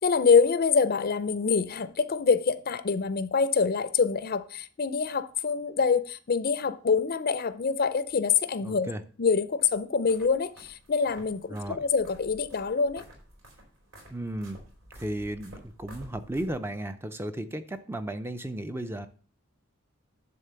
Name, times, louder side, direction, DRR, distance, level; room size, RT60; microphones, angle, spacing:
voice 1, 0.0-8.9 9.2-13.0, left 5 dB, 45° left, 0.5 m, -25 dB
voice 2, 8.6-9.0 11.5-11.8 14.1-14.6 15.0-19.1, right 1 dB, 10° right, 0.4 m, -34 dB
sound 1, 9.6-16.9, equal, 70° right, 4.0 m, -51 dB
10.5 x 3.7 x 6.8 m
head